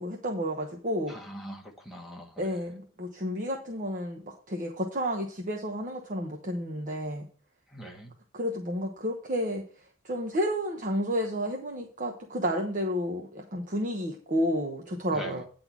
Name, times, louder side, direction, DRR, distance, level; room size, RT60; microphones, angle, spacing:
voice 1, 0.0-1.2 2.4-7.3 8.3-9.6 10.0-15.4, equal, 40° right, 2 dB, 1.1 m, -31 dB
voice 2, 1.1-2.5 7.7-8.1 15.1-15.4, equal, ahead, 1 dB, 1.7 m, -42 dB
9.8 x 4.0 x 7.3 m, 0.43 s
head